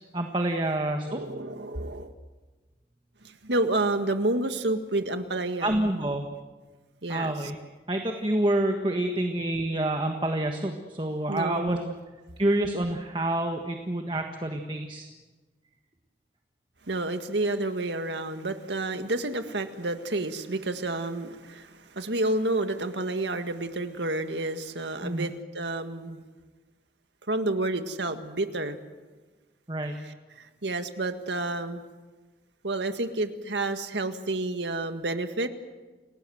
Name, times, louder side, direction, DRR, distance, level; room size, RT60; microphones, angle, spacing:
voice 1, 0.0-1.2 5.6-6.3 7.1-7.5 7.9-11.8 12.4-15.1 25.0-25.3 29.7-30.0, right 1 dB, 25° right, 4 dB, 1.5 m, -28 dB
voice 2, 1.0-2.1 3.2-5.8 7.0-7.5 11.3-12.0 16.9-26.2 27.3-28.8 30.0-31.8 32.6-35.5, right 2 dB, 90° right, 8 dB, 1.8 m, -30 dB
29.0 x 18.5 x 7.9 m, 1.3 s
head